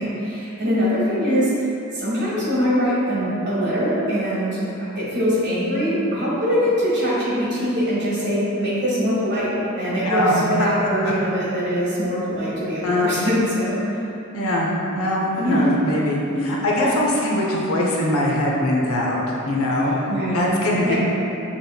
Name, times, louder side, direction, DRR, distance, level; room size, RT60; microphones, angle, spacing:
voice 1, 0.0-4.6 4.9-9.5 9.8-14.0 15.4-15.7 16.3-16.4 16.8-17.0 19.9-20.5 20.8-21.0, equal, 55° right, -8 dB, 1.5 m, -23 dB
voice 2, 10.0-10.7 12.8-13.1 14.3-14.7 14.9-19.9 20.3-20.9, left 1 dB, 80° left, -3 dB, 0.6 m, -22 dB
6.7 x 3.0 x 2.2 m, 2.9 s
head